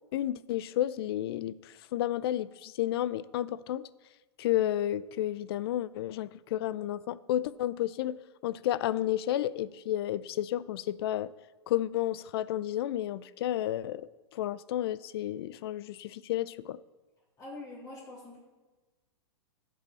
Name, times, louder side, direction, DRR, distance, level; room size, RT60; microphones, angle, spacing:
voice 1, 0.1-3.9 4.4-11.3 11.7-14.0 14.3-16.8, left 13 dB, 60° left, 18 dB, 0.4 m, -31 dB
voice 2, 17.4-18.4, left 2 dB, 25° left, -4 dB, 3.5 m, -44 dB
15.0 x 5.5 x 4.1 m, 1.2 s
hypercardioid pair, 140°, 15 cm